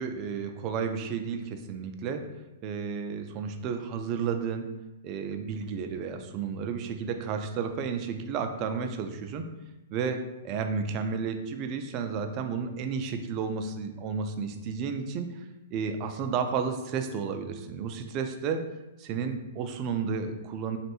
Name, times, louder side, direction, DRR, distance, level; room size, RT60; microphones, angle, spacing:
voice 1, 0.0-2.2 2.6-4.7 5.0-9.5 9.9-18.6 19.0-20.8, right 6 dB, 40° right, 6 dB, 0.4 m, -32 dB
3.1 x 2.5 x 2.9 m, 1.0 s
hypercardioid pair, 115°, 0 cm